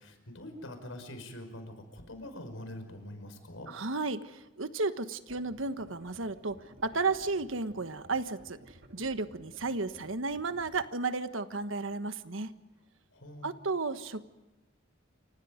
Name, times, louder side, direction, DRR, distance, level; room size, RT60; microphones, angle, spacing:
voice 1, 0.0-3.7 13.1-13.5, left 1 dB, 85° left, 7 dB, 5.3 m, -44 dB
voice 2, 3.7-12.5 13.4-14.2, right 3 dB, 80° right, 10 dB, 1.4 m, -33 dB
sound 1, 5.3-10.8, right 1 dB, 55° right, 1.9 m, -55 dB
29.0 x 25.0 x 5.2 m, 1.1 s
head